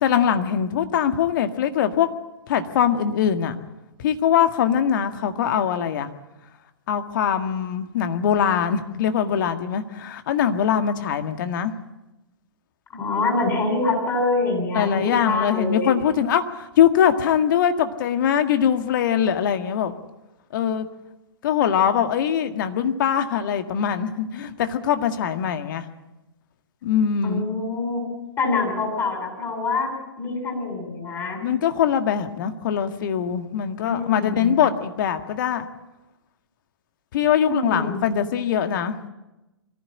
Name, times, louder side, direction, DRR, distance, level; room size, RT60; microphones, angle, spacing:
voice 1, 0.0-2.1 2.5-3.5 4.0-6.1 6.9-11.7 14.7-19.9 20.5-20.9 21.4-25.9 26.8-27.5 31.4-35.7 37.1-39.0, left 8 dB, 50° left, 8 dB, 1.8 m, -22 dB
voice 2, 12.9-15.9 27.2-28.0 28.4-29.9 30.2-31.4 33.8-34.6 37.4-38.1, left 3 dB, 20° left, 1 dB, 7.7 m, -25 dB
23.0 x 15.0 x 8.8 m, 1.0 s
figure-of-eight pair, 120°, 14 cm